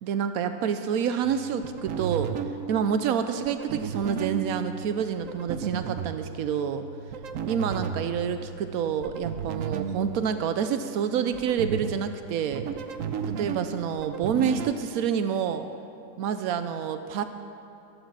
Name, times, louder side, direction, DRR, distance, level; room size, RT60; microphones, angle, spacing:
voice 1, 0.0-2.3 2.7-6.8 7.5-12.7 13.4-15.7 16.2-17.2, right 8 dB, 90° right, 9 dB, 1.1 m, -28 dB
sound 1, 1.2-14.7, right 6 dB, 70° right, 1.1 m, -35 dB
13.0 x 11.0 x 7.4 m, 2.7 s
omnidirectional pair, 1.5 m